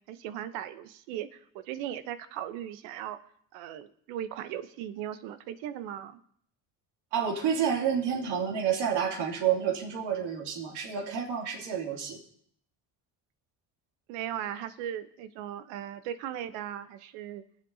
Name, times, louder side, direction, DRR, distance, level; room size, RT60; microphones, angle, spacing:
voice 1, 0.1-3.2 3.5-6.2 14.1-17.4, right 11 dB, 85° right, 11 dB, 0.9 m, -38 dB
voice 2, 7.1-12.2, right 8 dB, 65° right, 0 dB, 2.8 m, -29 dB
24.0 x 8.0 x 2.7 m, 0.65 s
supercardioid pair, 70°, 44 cm